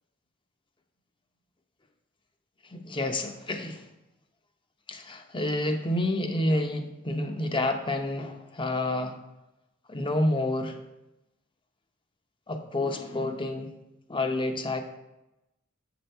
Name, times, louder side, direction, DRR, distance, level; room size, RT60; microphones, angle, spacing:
voice 1, 2.7-3.8 4.9-9.2 9.9-10.8 12.5-13.7 14.1-14.8, left 1 dB, 25° left, 6 dB, 0.7 m, -29 dB
7.2 x 7.0 x 4.4 m, 0.96 s
head